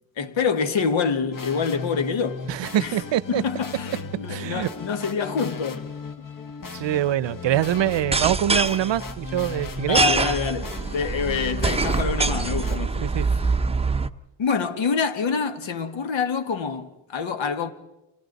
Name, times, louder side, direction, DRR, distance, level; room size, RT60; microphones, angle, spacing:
voice 1, 0.2-2.4 2.8-5.9 9.8-13.4 14.4-17.7, left 6 dB, 75° left, 2.0 m, -26 dB
sound 1, 1.3-12.8, left 4 dB, 45° left, 1.5 m, -36 dB
voice 2, 2.5-3.4 4.3-4.7 6.7-10.0 13.0-13.3, right 12 dB, 70° right, 0.7 m, -24 dB
sound 2, 8.0-14.1, right 4 dB, 15° right, 0.7 m, -25 dB
30.0 x 26.0 x 4.1 m
cardioid pair, 100°, 46 cm